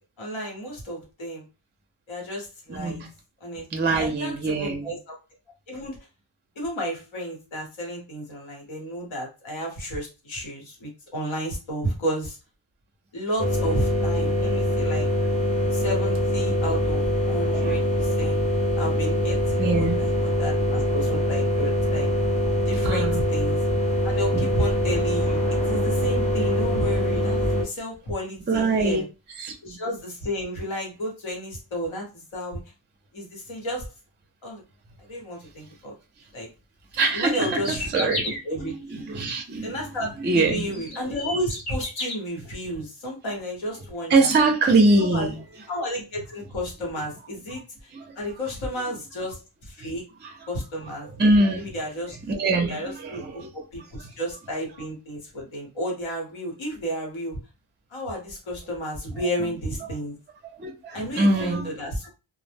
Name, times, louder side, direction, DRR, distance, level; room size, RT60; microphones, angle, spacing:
voice 1, 0.2-1.4 2.1-3.0 3.4-3.7 4.0-5.2 5.7-6.1 6.6-12.4 13.1-15.1 15.7-18.4 18.8-22.1 22.7-23.6 24.0-29.0 29.6-32.7 33.1-33.9 34.4-34.6 35.0-35.9 36.3-36.5 37.1-38.1 38.4-39.0 39.6-44.3 45.0-45.3 45.7-47.9 48.2-50.0 50.5-51.1 51.5-52.2 52.7-57.4 57.9-60.2 60.9-62.1, equal, 70° left, 1.1 m, -32 dB
voice 2, 2.7-3.1 3.7-4.9 14.2-14.3 14.6-14.7 16.7-16.8 17.5-18.3 18.6-19.1 19.6-20.1 22.8-23.2 24.3-24.6 28.5-29.0 29.4-29.6 36.9-39.8 40.2-40.8 44.1-45.4 47.9-48.2 49.8-49.9 50.2-50.3 51.2-51.7 52.2-53.5 59.2-59.3 60.4-61.8, right 2 dB, 25° right, 0.4 m, -24 dB
sound 1, 13.4-27.6, left 1 dB, 15° left, 0.7 m, -23 dB
sound 2, 37.2-38.4 40.1-40.2 40.7-42.1, left 1 dB, 50° left, 1.1 m, -31 dB
2.0 x 2.0 x 3.3 m
wide cardioid pair, 100°, 48 cm